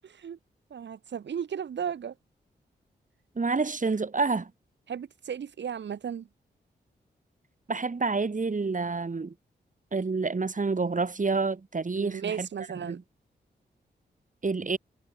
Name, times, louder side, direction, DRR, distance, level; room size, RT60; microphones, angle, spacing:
voice 1, 0.0-0.4 0.7-2.1 4.9-6.3 11.9-13.0, right 8 dB, 75° right, 2.4 m, -35 dB
voice 2, 3.4-4.5 7.7-9.3 9.9-12.5 12.8-13.0 14.4-14.8, right 4 dB, 45° right, 5.4 m, -28 dB
cardioid pair, 50°, 19 cm